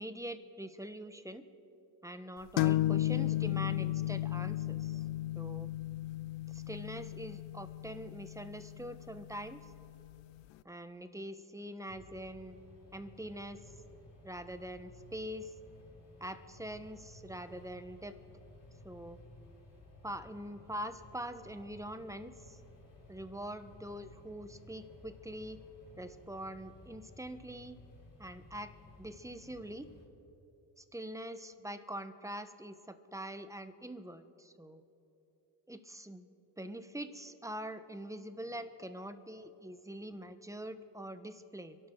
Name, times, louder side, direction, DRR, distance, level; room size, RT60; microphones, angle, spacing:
voice 1, 0.0-1.4 2.0-5.0 5.3-5.7 6.5-9.7 10.6-12.6 12.9-13.6 14.2-15.5 16.2-18.2 18.8-19.2 20.0-22.6 23.1-25.6 26.0-27.8 28.2-29.9 30.8-34.8 35.7-36.3 36.6-41.8, right 1 dB, 5° right, 10 dB, 1.1 m, -44 dB
sound 1, 2.6-10.1, left 15 dB, 75° left, 0.5 m, -34 dB
sound 2, 11.9-30.1, left 2 dB, 45° left, 3.3 m, -56 dB
27.0 x 11.5 x 3.8 m, 2.9 s
supercardioid pair, 65°, 46 cm